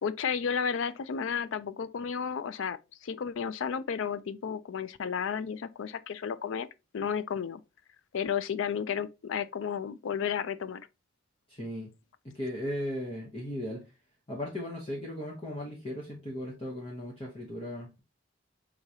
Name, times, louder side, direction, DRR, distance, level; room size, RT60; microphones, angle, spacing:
voice 1, 0.0-6.7 6.9-7.6 8.1-10.9, left 7 dB, 65° left, 0.4 m, -32 dB
voice 2, 11.5-11.9 12.2-13.8 14.3-18.0, left 1 dB, 25° left, 0.9 m, -37 dB
4.7 x 3.7 x 2.8 m
head